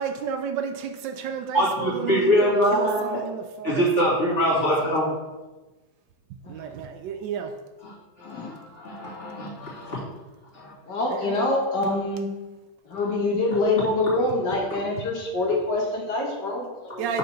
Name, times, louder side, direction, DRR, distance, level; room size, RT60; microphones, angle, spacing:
voice 1, 0.0-5.2 6.5-7.6 11.1-11.4 17.0-17.2, right 7 dB, 75° right, 6 dB, 1.2 m, -32 dB
voice 2, 1.5-3.2 3.6-5.1 8.2-10.0 10.5-10.7, equal, 35° left, -6 dB, 2.5 m, -23 dB
voice 3, 10.9-12.3 12.8-17.1, left 2 dB, 65° left, -1 dB, 1.8 m, -25 dB
6.5 x 4.3 x 5.6 m, 1.2 s
omnidirectional pair, 2.1 m